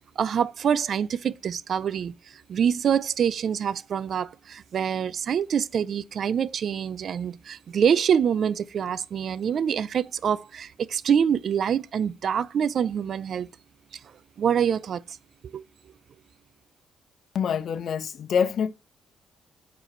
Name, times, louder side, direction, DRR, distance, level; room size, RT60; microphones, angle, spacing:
voice 1, 0.2-2.1 2.5-13.5 14.4-15.0 15.5-15.6, right 8 dB, 60° right, 0.4 m, -25 dB
voice 2, 17.3-18.7, left 7 dB, 60° left, 1.1 m, -25 dB
7.1 x 4.7 x 4.4 m
cardioid pair, 90°, 0 cm